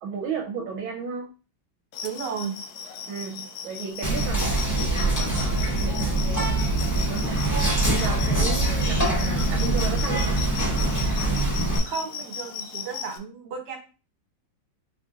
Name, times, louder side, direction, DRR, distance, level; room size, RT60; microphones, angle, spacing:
voice 1, 0.0-1.3 3.1-7.4 7.8-10.5, right 5 dB, 85° right, 0 dB, 1.4 m, -34 dB
sound 1, 1.9-13.2, left 7 dB, 80° left, 0.9 m, -37 dB
voice 2, 2.0-2.6 11.8-13.8, right 6 dB, 60° right, 1 dB, 1.6 m, -33 dB
Whispering, 4.0-11.8, right 2 dB, 20° left, 0.4 m, -24 dB
5.1 x 2.6 x 2.4 m, 0.33 s
omnidirectional pair, 2.2 m